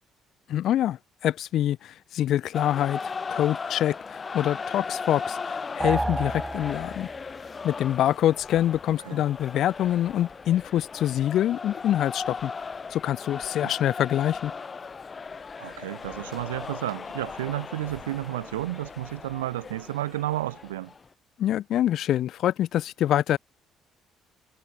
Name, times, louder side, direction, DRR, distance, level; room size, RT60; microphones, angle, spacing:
voice 1, 0.5-7.1 7.6-12.5 12.9-14.5 21.4-23.4, left 12 dB, 60° left, 0.4 m, -25 dB
sound 1, 2.5-21.1, left 5 dB, 35° left, 1.2 m, -37 dB
sound 2, 5.8-7.3, right 1 dB, 10° right, 0.4 m, -30 dB
voice 2, 15.6-20.9, right 15 dB, 80° right, 0.6 m, -32 dB
hypercardioid pair, 45°, 0 cm